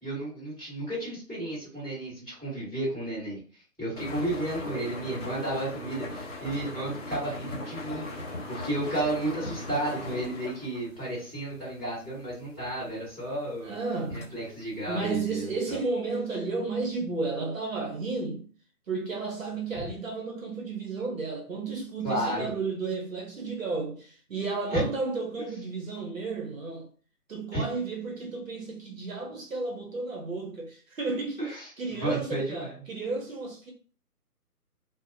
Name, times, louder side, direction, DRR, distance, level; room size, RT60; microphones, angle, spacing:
voice 1, 0.0-3.4 3.8-8.1 8.5-13.7 14.1-15.8 22.0-22.5 24.7-24.9 27.5-27.6 31.4-32.7, right 1 dB, ahead, 1.4 m, -32 dB
sound 1, 3.9-15.1, left 1 dB, 50° left, 0.9 m, -39 dB
voice 2, 13.6-14.3 14.9-18.5 18.9-26.9 27.3-31.4 31.8-33.7, right 3 dB, 55° right, 0.7 m, -32 dB
2.7 x 2.0 x 2.6 m
figure-of-eight pair, 155°, 47 cm